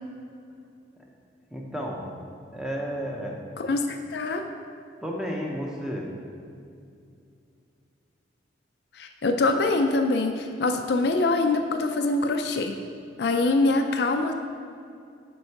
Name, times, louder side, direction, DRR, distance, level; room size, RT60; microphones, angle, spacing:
voice 1, 1.5-2.0 2.5-3.4 4.1-4.2 5.0-6.1, equal, 5° right, -1 dB, 0.7 m, -32 dB
voice 2, 3.6-4.4 9.0-12.8 13.2-14.3, left 2 dB, 55° left, 5 dB, 0.4 m, -24 dB
6.2 x 5.4 x 4.6 m, 2.5 s
head